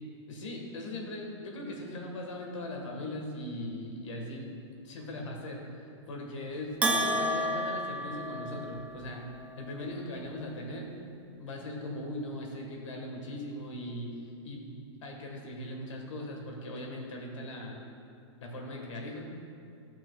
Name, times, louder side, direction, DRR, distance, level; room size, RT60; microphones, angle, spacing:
voice 1, 0.3-4.6 4.8-9.3 9.6-10.9 11.4-17.8 18.4-19.2, left 1 dB, 85° left, 0 dB, 1.9 m, -39 dB
Bell, 6.8-9.0, right 1 dB, 10° right, 0.5 m, -30 dB
16.0 x 5.9 x 2.5 m, 2.4 s
hypercardioid pair, 145°, 16 cm